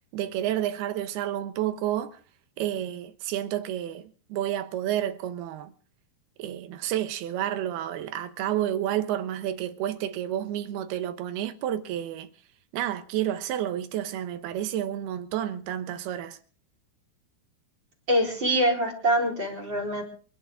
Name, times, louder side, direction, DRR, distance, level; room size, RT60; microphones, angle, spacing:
voice 1, 0.1-2.2 2.6-5.7 6.4-12.3 12.7-16.4, right 11 dB, 75° right, 3.0 m, -30 dB
voice 2, 18.1-20.0, right 1 dB, 30° right, 4.6 m, -24 dB
28.0 x 11.5 x 3.7 m
omnidirectional pair, 4.7 m